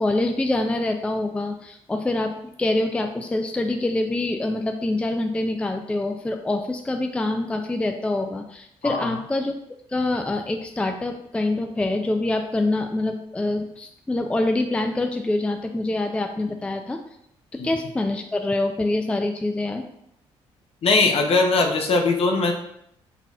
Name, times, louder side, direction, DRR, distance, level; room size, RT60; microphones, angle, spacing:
voice 1, 0.0-9.5 9.9-17.0 17.6-19.8, left 2 dB, 10° left, 5 dB, 0.3 m, -25 dB
voice 2, 8.8-9.2 17.6-17.7 20.8-22.5, left 3 dB, 55° left, 3 dB, 0.7 m, -20 dB
4.1 x 4.1 x 2.4 m, 0.75 s
supercardioid pair, 75°, 12 cm